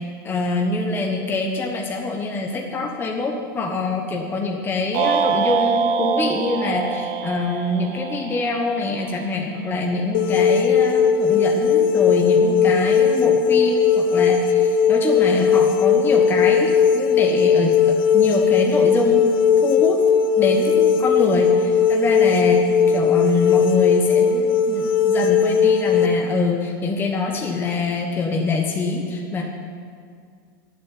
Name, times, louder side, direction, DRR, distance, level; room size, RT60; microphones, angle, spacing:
voice 1, 0.2-19.3 19.6-20.0 20.4-29.4, left 3 dB, 20° left, 1 dB, 1.1 m, -24 dB
sound 1, 4.9-9.3, right 6 dB, 50° right, 0.8 m, -24 dB
sound 2, 10.1-26.1, left 6 dB, 80° left, 0.8 m, -18 dB
11.5 x 7.9 x 9.0 m, 2.2 s
supercardioid pair, 145°, 12 cm